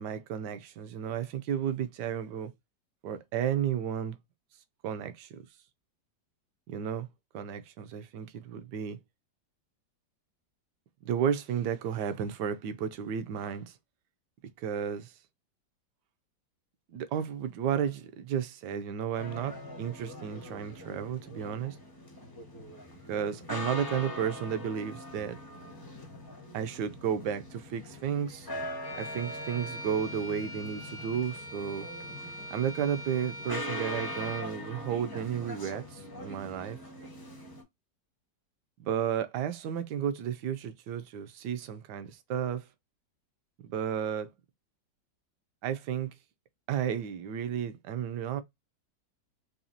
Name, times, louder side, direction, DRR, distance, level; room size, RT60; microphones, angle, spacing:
voice 1, 0.0-2.5 3.0-4.2 4.8-5.4 6.7-7.1 7.3-9.0 11.0-13.7 14.6-15.1 16.9-21.8 23.1-25.4 26.5-28.5 29.0-31.9 32.5-36.8 38.8-42.6 43.6-44.3 45.6-46.1 46.7-48.4, right 8 dB, 75° right, 1.1 m, -33 dB
sound 1, 19.2-37.6, left 1 dB, 35° left, 0.3 m, -42 dB
Bowed string instrument, 28.8-34.5, equal, 35° right, 0.5 m, -42 dB
4.2 x 2.7 x 2.6 m
omnidirectional pair, 2.0 m